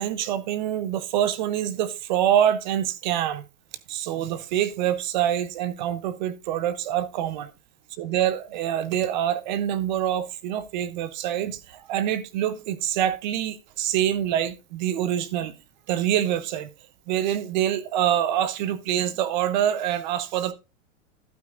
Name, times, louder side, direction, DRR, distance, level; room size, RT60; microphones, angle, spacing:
voice 1, 0.0-3.4 3.9-7.5 8.0-15.5 15.9-16.7 17.1-20.5, right 10 dB, 35° right, 0.6 m, -25 dB
12.0 x 9.1 x 2.4 m
supercardioid pair, 175°, 39 cm